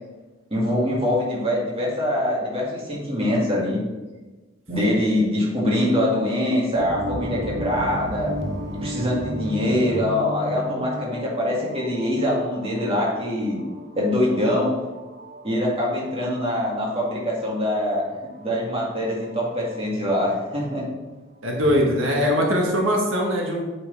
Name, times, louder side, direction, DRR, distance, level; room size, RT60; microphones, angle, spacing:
voice 1, 0.5-3.8 4.7-8.3 8.7-13.6 13.9-14.7 15.4-18.0 18.4-20.8, left 1 dB, 30° right, -4 dB, 2.2 m, -23 dB
sound 1, 6.8-20.2, equal, 60° right, 0.9 m, -34 dB
voice 2, 21.4-23.6, equal, 85° right, -1 dB, 1.4 m, -21 dB
8.1 x 6.2 x 3.4 m, 1.2 s
head